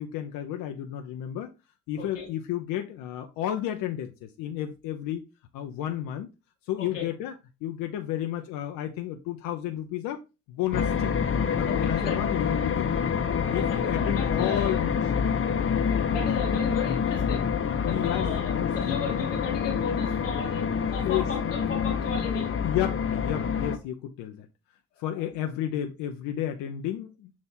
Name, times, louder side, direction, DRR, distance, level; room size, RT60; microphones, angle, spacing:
voice 1, 0.0-1.5 1.9-5.2 5.5-6.3 6.6-7.3 7.6-10.2 10.5-11.1 11.6-12.9 13.5-15.0 17.8-18.7 20.8-21.3 22.6-24.5 25.0-27.3, left 11 dB, 65° left, 0.8 m, -32 dB
voice 2, 2.0-2.3 6.8-7.0 11.6-12.2 13.5-14.8 15.9-17.6 17.9-22.5, left 5 dB, 90° left, 1.4 m, -35 dB
sound 1, 10.7-23.8, left 6 dB, 35° left, 1.0 m, -27 dB
7.1 x 3.2 x 4.4 m
figure-of-eight pair, 40°, 37 cm